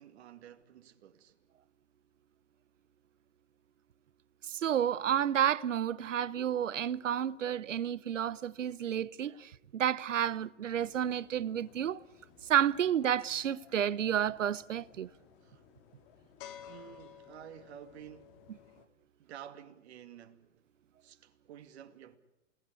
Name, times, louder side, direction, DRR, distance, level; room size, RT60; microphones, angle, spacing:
voice 1, 0.0-1.3 15.4-15.7 16.7-18.4 19.2-20.5 21.0-22.2, right 10 dB, 60° right, 2.5 m, -51 dB
voice 2, 4.4-12.0 12.4-15.1, right 9 dB, 80° right, 0.9 m, -31 dB
sound 1, 10.7-18.9, left 9 dB, 45° left, 2.5 m, -55 dB
29.0 x 19.0 x 8.4 m
hypercardioid pair, 115°, 37 cm